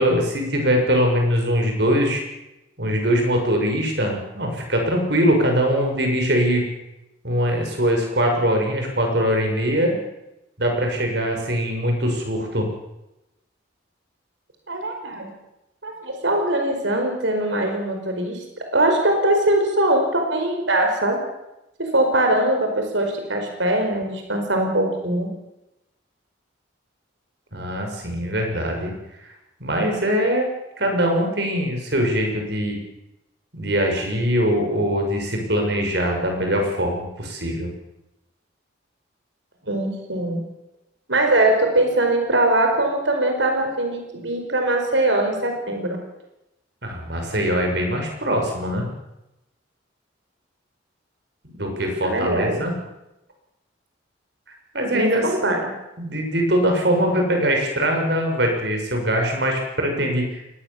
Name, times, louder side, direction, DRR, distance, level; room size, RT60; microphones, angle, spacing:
voice 1, 0.0-2.2 2.8-6.6 7.2-10.0 10.6-12.7 27.5-28.9 29.2-29.3 29.6-30.5 30.8-32.8 33.5-37.7 46.8-48.9 51.4-52.7 54.7-55.5 56.0-60.4, equal, 60° right, 2 dB, 6.7 m, -22 dB
voice 2, 14.7-15.3 15.8-18.4 18.7-21.2 21.8-25.3 39.7-40.4 41.1-46.0 52.0-52.6 54.9-55.7, right 1 dB, 80° right, 3 dB, 5.0 m, -21 dB
22.5 x 19.0 x 7.3 m, 0.89 s
head